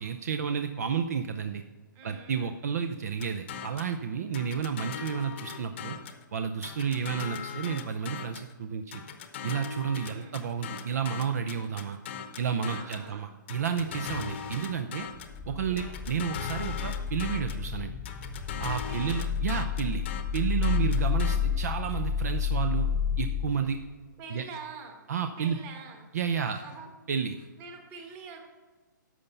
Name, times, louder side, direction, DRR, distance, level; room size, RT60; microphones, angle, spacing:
voice 1, 0.0-1.6 2.0-6.0 6.3-9.0 9.4-12.0 12.4-15.1 15.5-17.9 18.6-20.0 20.3-22.9 23.2-23.8 24.3-24.4 25.1-25.6 26.1-26.6 27.1-27.4, right 7 dB, 50° right, 8 dB, 0.6 m, -31 dB
voice 2, 1.9-2.5 6.9-7.1 10.1-10.4 12.7-13.3 15.5-16.0 18.9-19.2 24.2-25.0 25.4-26.1 26.5-26.9 27.6-28.4, right 4 dB, 20° right, 3 dB, 1.3 m, -45 dB
sound 1, 3.2-3.9 4.3-6.2 6.6-8.5 8.9-13.1 13.5-15.4 15.8-17.7 18.0-21.4, left 7 dB, 35° left, 0.9 m, -39 dB
sound 2, 15.2-23.5, left 7 dB, 5° left, 0.8 m, -30 dB
11.0 x 7.0 x 5.3 m, 1.3 s
hypercardioid pair, 170°, 11 cm